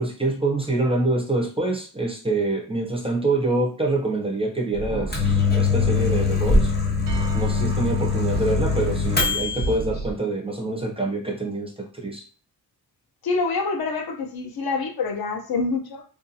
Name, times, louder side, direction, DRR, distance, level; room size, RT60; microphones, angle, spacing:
voice 1, 0.0-6.7 7.3-12.2, right 2 dB, 15° right, -1 dB, 0.5 m, -25 dB
sound 1, 4.7-10.1, right 2 dB, 85° right, 0.6 m, -31 dB
Microwave oven, 4.9-9.7, left 5 dB, 25° left, 0.8 m, -22 dB
voice 2, 13.2-16.0, left 4 dB, 60° left, 2 dB, 0.7 m, -26 dB
2.6 x 2.3 x 2.7 m, 0.39 s
wide cardioid pair, 105°, 41 cm